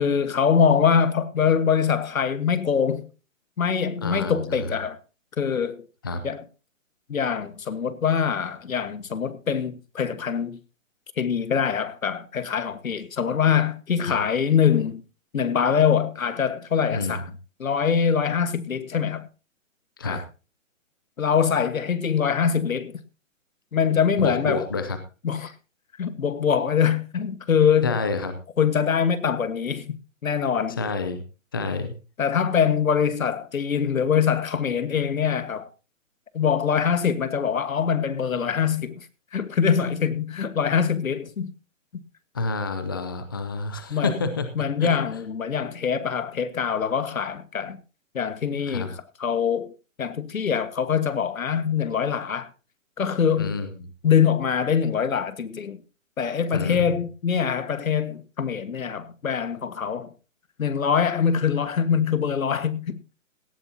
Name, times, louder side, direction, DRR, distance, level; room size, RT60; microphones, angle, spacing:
voice 1, 0.0-3.0 3.6-5.0 5.4-5.8 6.2-6.4 7.1-10.6 11.2-15.0 15.3-17.2 17.6-19.2 20.0-20.2 21.2-22.9 23.7-24.6 25.2-25.5 26.0-27.9 28.6-30.0 30.2-30.8 32.2-35.7 36.3-39.0 39.3-41.5 43.9-44.1 44.6-47.8 48.1-48.9 49.2-49.7 50.0-52.5 53.0-53.5 54.0-55.8 56.2-60.1 60.6-63.0, left 7 dB, 85° left, 1.6 m, -23 dB
voice 2, 4.0-4.8 6.0-6.2 14.0-14.2 16.9-17.2 20.0-20.2 24.2-25.0 27.8-28.3 30.8-31.2 31.5-31.9 42.3-44.5 44.8-45.2 48.7-48.9 53.4-53.9 56.5-57.0, left 3 dB, 15° left, 0.6 m, -29 dB
17.5 x 12.5 x 2.8 m
hypercardioid pair, 165°, 40 cm